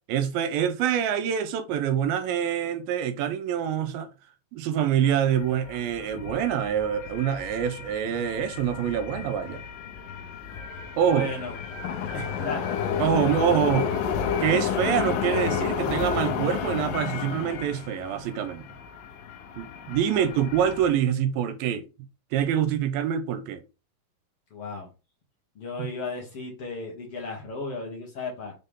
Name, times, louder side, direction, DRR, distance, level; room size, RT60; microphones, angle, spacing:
voice 1, 0.1-4.1 4.5-9.6 11.0-11.3 13.0-13.9 14.4-18.6 19.6-21.8 22.3-23.6 25.8-25.9, right 9 dB, 80° right, 2.5 m, -25 dB
sound 1, 5.0-20.9, left 7 dB, 75° left, 2.5 m, -32 dB
voice 2, 11.1-11.5 12.1-12.7 20.1-20.4 24.5-24.9 25.6-28.5, left 2 dB, 50° left, 2.0 m, -35 dB
6.6 x 3.9 x 3.6 m
omnidirectional pair, 4.3 m